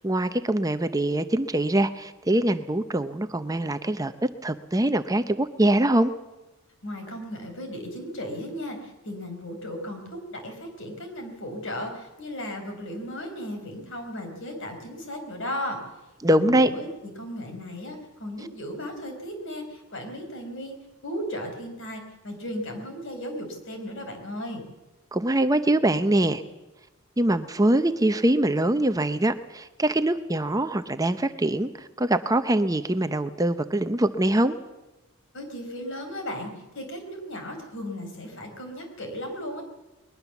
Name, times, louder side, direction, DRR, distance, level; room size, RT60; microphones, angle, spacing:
voice 1, 0.0-6.1 16.2-16.7 25.1-26.4 27.2-34.6, right 1 dB, 15° right, 10 dB, 0.7 m, -23 dB
voice 2, 6.8-15.8 16.3-20.7 21.0-24.6 35.3-39.6, equal, 60° left, 5 dB, 4.9 m, -36 dB
21.0 x 21.0 x 7.2 m, 1.0 s
head